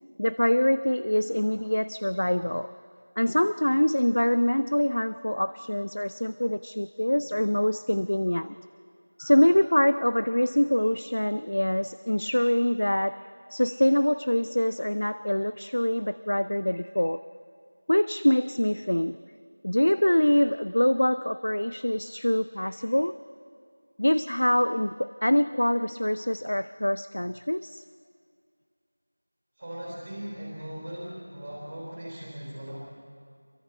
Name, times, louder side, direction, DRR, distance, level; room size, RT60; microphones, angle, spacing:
voice 1, 0.2-2.7 3.2-8.6 9.2-17.2 17.9-19.2 19.6-23.2 24.0-27.8, left 1 dB, 60° left, 14 dB, 0.5 m, -24 dB
voice 2, 29.6-32.8, right 1 dB, 15° right, -4 dB, 3.4 m, -38 dB
28.5 x 23.5 x 4.4 m, 2.3 s
figure-of-eight pair, 180°, 0 cm